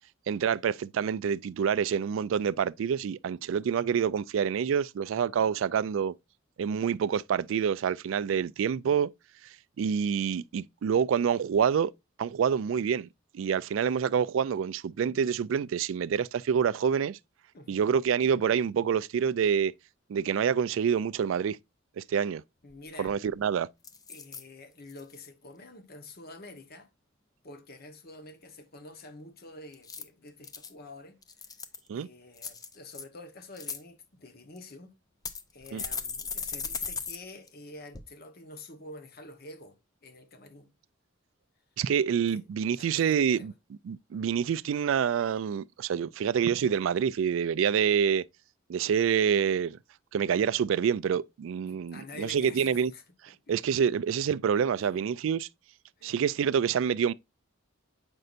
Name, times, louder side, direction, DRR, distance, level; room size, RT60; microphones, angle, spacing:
voice 1, 0.3-6.1 6.6-9.1 9.4-11.9 12.2-13.1 13.3-17.2 17.7-19.7 20.1-21.6 22.0-22.4 23.0-23.7 31.9-32.1 35.7-35.8 41.8-48.2 48.7-49.8 50.1-52.9 53.2-55.5 56.0-57.1, right 7 dB, 70° right, 0.3 m, -27 dB
voice 2, 17.5-17.9 22.6-23.1 24.1-26.9 27.4-31.2 31.9-34.9 35.5-39.8 40.0-40.7 42.3-42.4 42.8-43.5 51.7-53.0 53.5-53.6 54.8-55.0 56.0-56.2, left 2 dB, 50° left, 1.1 m, -47 dB
sound 1, 22.7-22.8 23.1-23.4 23.8-24.4 24.9-25.3 29.7-30.7 31.2-31.9 32.4-33.0 33.4-33.8 34.6-34.7 35.2-37.2 37.5-37.6 37.9-38.0, left 5 dB, 20° left, 0.5 m, -37 dB
7.8 x 5.4 x 2.5 m
head